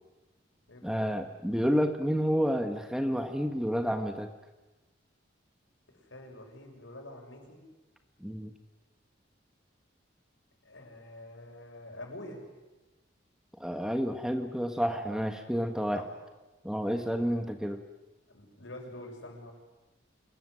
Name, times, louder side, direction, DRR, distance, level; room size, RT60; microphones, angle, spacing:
voice 1, 0.8-4.3 8.2-8.5 13.6-16.0 16.6-17.8, equal, 5° right, 6 dB, 1.5 m, -30 dB
voice 2, 5.9-7.6 10.6-12.4 15.9-16.1 18.3-19.5, left 1 dB, 90° left, 2 dB, 7.2 m, -46 dB
27.5 x 21.5 x 9.8 m, 1.1 s
head